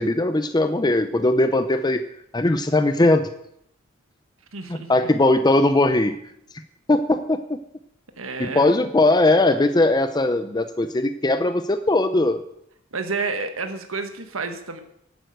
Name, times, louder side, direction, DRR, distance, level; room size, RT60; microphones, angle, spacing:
voice 1, 0.0-2.1 2.3-3.3 4.7-6.2 6.9-7.6 8.4-12.4, left 2 dB, 20° left, 9 dB, 0.6 m, -19 dB
voice 2, 4.5-4.9 8.2-8.7 12.9-14.8, right 4 dB, 85° right, 7 dB, 1.5 m, -30 dB
11.0 x 9.2 x 7.9 m, 0.74 s
head